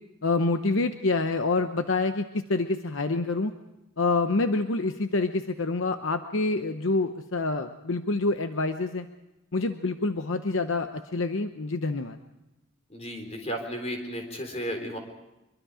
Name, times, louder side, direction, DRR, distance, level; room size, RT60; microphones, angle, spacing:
voice 1, 0.2-3.5 4.0-9.1 9.5-12.2, left 3 dB, 65° left, 8 dB, 0.8 m, -27 dB
voice 2, 12.9-15.0, equal, 30° left, 4 dB, 4.0 m, -34 dB
24.5 x 23.0 x 5.0 m, 0.97 s
head